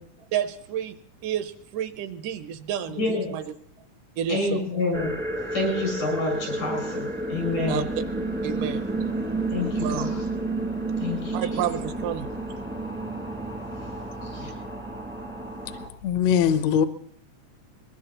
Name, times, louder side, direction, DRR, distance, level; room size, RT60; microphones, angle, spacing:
voice 1, 0.3-0.9 1.2-3.4 4.2-4.6 7.7-7.8 8.4-8.8 9.8-10.1 11.3-12.3, right 10 dB, 80° right, 11 dB, 2.3 m, -30 dB
voice 2, 3.0-3.4 4.3-5.1 5.5-7.9 9.5-10.2 11.0-11.6 14.3-14.5, left 2 dB, 90° left, 2 dB, 8.9 m, -28 dB
sound 1, 4.9-15.9, right 2 dB, 10° right, 0.5 m, -31 dB
voice 3, 16.0-16.9, left 8 dB, 70° left, 10 dB, 1.8 m, -21 dB
22.5 x 21.0 x 2.9 m, 0.68 s
omnidirectional pair, 3.6 m